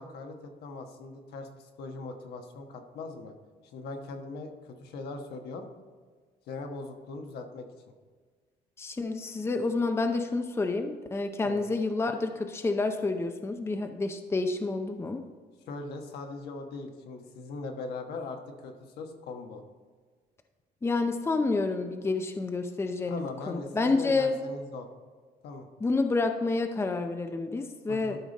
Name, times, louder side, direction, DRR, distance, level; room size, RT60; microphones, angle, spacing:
voice 1, 0.0-3.3 3.7-5.7 6.5-7.7 11.4-11.6 15.7-19.6 23.1-24.9 25.4-25.7 27.9-28.2, left 3 dB, 75° left, 4 dB, 1.3 m, -40 dB
voice 2, 8.8-15.2 20.8-24.4 25.8-28.2, left 3 dB, 15° left, 6 dB, 0.6 m, -29 dB
12.5 x 5.0 x 4.1 m, 1.5 s
cardioid pair, 110°, 17 cm